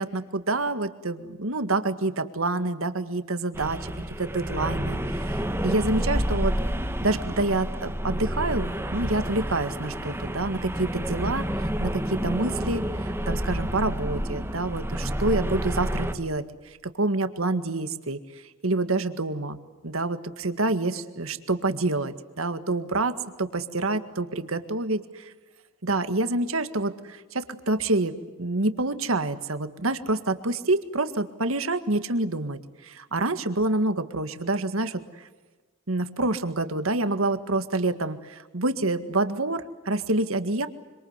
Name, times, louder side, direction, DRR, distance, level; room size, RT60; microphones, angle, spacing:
voice 1, 0.0-6.5 7.0-16.4 17.0-18.2 18.6-19.6 19.8-25.3 25.8-35.0 35.9-40.7, right 2 dB, 70° right, 10 dB, 1.8 m, -27 dB
sound 1, 3.5-16.2, equal, 10° right, 1.7 m, -29 dB
26.0 x 25.5 x 8.1 m, 1.2 s
head